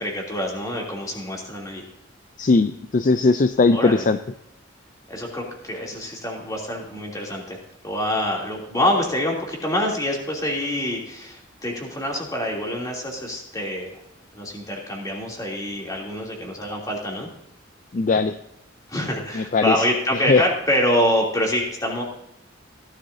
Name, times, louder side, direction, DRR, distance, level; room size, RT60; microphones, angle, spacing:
voice 1, 0.0-1.8 3.7-4.1 5.1-13.9 14.3-17.3 18.9-22.0, left 1 dB, 20° left, -2 dB, 3.0 m, -26 dB
voice 2, 2.4-4.2 17.9-18.3 19.3-19.9 20.3-20.4, left 3 dB, 40° left, 10 dB, 0.4 m, -19 dB
17.0 x 12.0 x 2.8 m, 0.83 s
head